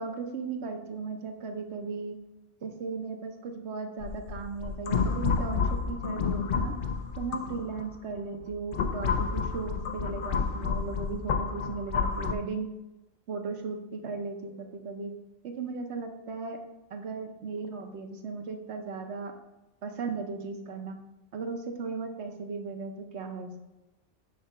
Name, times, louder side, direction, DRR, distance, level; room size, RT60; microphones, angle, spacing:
voice 1, 0.0-2.2 2.6-6.7 7.2-12.7 13.3-15.1 15.4-16.6 16.9-19.3 19.8-21.0 21.3-23.6, right 4 dB, 70° right, 4 dB, 1.0 m, -36 dB
sound 1, 4.0-7.9 8.4-12.3, left 5 dB, 60° left, 0.6 m, -30 dB
6.6 x 3.9 x 5.5 m, 0.99 s
omnidirectional pair, 1.2 m